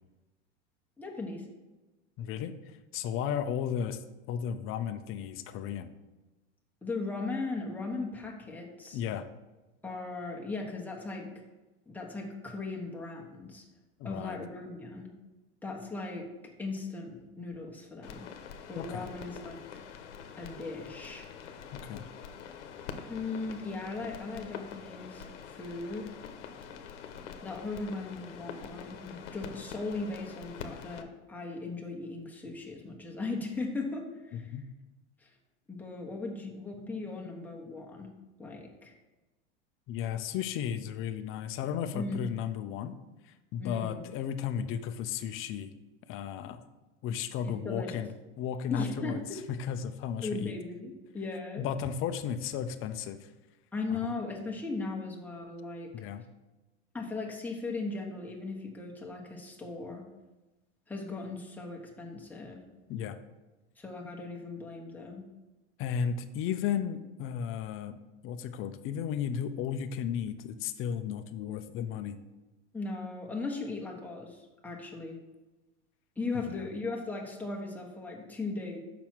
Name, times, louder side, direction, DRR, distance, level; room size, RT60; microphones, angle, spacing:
voice 1, 1.0-1.4 6.8-9.0 9.8-11.3 11.9-13.6 14.0-15.1 15.6-16.2 16.6-18.2 18.7-19.6 20.4-21.2 23.1-25.3 25.5-26.1 27.4-34.0 34.3-34.5 35.7-38.1 38.4-38.9 41.9-42.2 43.6-44.0 47.4-48.0 48.7-49.4 50.2-51.7 53.7-55.9 56.9-60.0 60.9-62.6 63.8-65.2 72.7-75.2 76.2-78.8, left 3 dB, 5° left, -2 dB, 1.3 m, -38 dB
voice 2, 2.2-2.5 2.9-4.0 4.3-5.9 8.9-9.2 14.0-14.4 18.8-19.0 21.7-22.1 34.3-34.6 39.9-42.9 43.5-45.7 46.1-46.6 47.0-48.1 48.4-49.2 49.5-50.5 51.6-53.2 53.9-54.1 55.9-56.2 62.9-63.2 65.8-68.0 68.2-72.2 76.3-76.5, left 8 dB, 35° left, 10 dB, 0.6 m, -34 dB
sound 1, 18.0-31.0, left 7 dB, 90° left, 1.0 m, -45 dB
7.0 x 6.0 x 4.5 m, 1.1 s
supercardioid pair, 130°, 35 cm